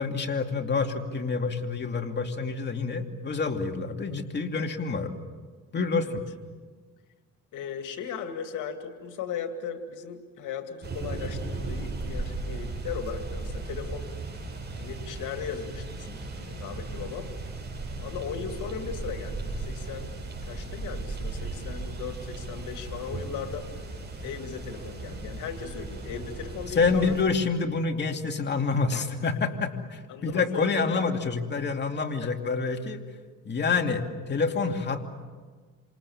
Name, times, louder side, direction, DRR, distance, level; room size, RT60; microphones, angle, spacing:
voice 1, 0.0-5.2 5.7-6.2 26.8-33.0 33.4-35.1, left 4 dB, 35° left, 3 dB, 2.6 m, -27 dB
voice 2, 7.5-14.1 14.8-17.3 18.0-20.1 20.4-23.7 24.2-27.2 28.9-29.1 30.1-31.1 32.2-32.3, left 7 dB, 85° left, 6 dB, 2.4 m, -37 dB
sound 1, 10.8-27.2, right 3 dB, 35° right, 8.0 m, -36 dB
28.0 x 27.0 x 7.2 m, 1.5 s
cardioid pair, 90°, 30 cm